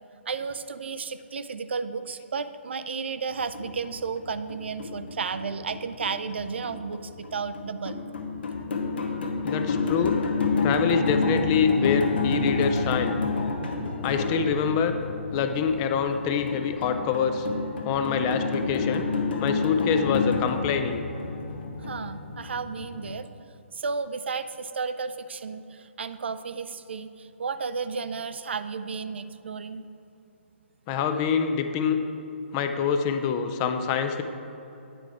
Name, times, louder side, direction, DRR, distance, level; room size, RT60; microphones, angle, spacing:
voice 1, 0.3-8.0 21.8-23.3 23.7-29.8, right 5 dB, 60° right, 12 dB, 0.3 m, -33 dB
sound 1, 3.3-23.2, left 4 dB, 55° left, 0.8 m, -29 dB
voice 2, 9.4-10.2 10.6-13.2 14.0-14.9 15.3-17.5 17.8-19.1 19.4-21.0 30.9-32.0 32.5-34.2, left 6 dB, 25° left, 8 dB, 0.4 m, -25 dB
9.2 x 4.7 x 4.7 m, 2.9 s
figure-of-eight pair, 130°, 7 cm